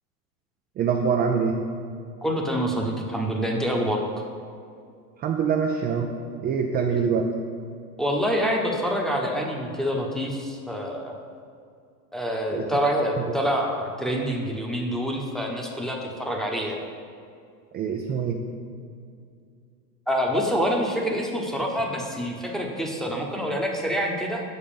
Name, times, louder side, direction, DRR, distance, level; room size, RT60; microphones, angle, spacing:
voice 1, 0.8-1.6 5.2-6.1 6.4-7.3 12.5-12.6 13.2-13.3 17.7-18.4, right 6 dB, 20° right, 1 dB, 0.4 m, -24 dB
voice 2, 2.2-4.0 8.0-11.2 12.1-16.8 20.1-24.4, equal, ahead, 0 dB, 1.0 m, -26 dB
6.3 x 5.5 x 7.0 m, 2.3 s
hypercardioid pair, 110°, 49 cm